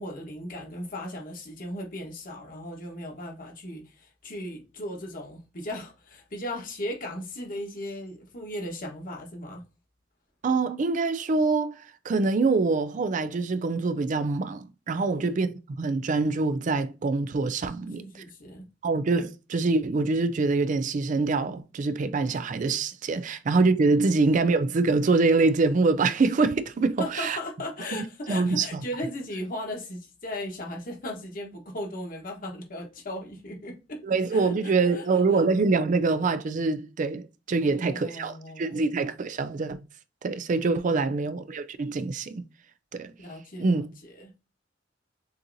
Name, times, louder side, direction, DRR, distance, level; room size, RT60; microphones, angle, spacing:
voice 1, 0.0-9.6 15.1-15.3 18.0-18.6 23.9-24.0 27.0-34.0 34.3-35.4 37.6-38.8 43.2-44.3, left 1 dB, 50° left, 1.3 m, -37 dB
voice 2, 10.4-11.8 12.0-15.5 15.8-18.2 18.8-27.4 28.3-28.8 34.0-39.8 40.2-42.4 42.9-43.1 43.6-43.9, right 3 dB, 45° right, 0.4 m, -25 dB
6.4 x 2.8 x 2.6 m
head